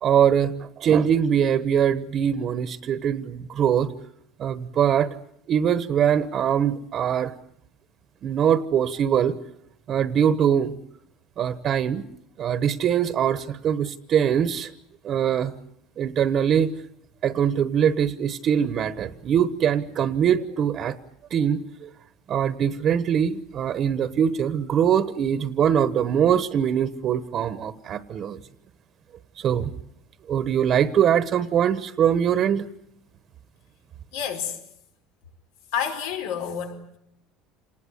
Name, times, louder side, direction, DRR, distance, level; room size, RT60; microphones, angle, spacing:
voice 1, 0.0-3.9 4.4-5.1 5.5-7.3 8.2-9.3 9.9-10.7 11.4-12.0 12.4-14.7 15.0-15.5 16.0-16.7 17.2-21.0 21.3-21.9 22.3-28.4 29.4-29.7 30.3-32.7, right 8 dB, 40° right, 13 dB, 1.1 m, -22 dB
voice 2, 34.1-34.6 35.7-37.0, left 8 dB, 90° left, 6 dB, 4.8 m, -29 dB
28.0 x 19.5 x 9.7 m, 0.75 s
cardioid pair, 145°, 0 cm